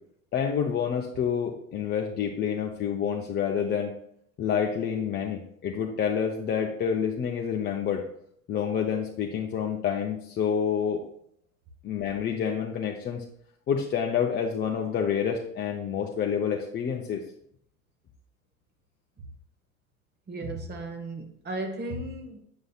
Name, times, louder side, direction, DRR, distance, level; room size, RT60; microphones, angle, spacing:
voice 1, 0.3-3.9 4.4-8.0 8.5-11.0 11.8-13.2 13.7-17.2, left 7 dB, 25° left, 0 dB, 0.6 m, -28 dB
voice 2, 20.3-22.4, right 1 dB, 25° right, 4 dB, 1.0 m, -35 dB
7.2 x 6.2 x 2.3 m, 0.69 s
figure-of-eight pair, 75°, 44 cm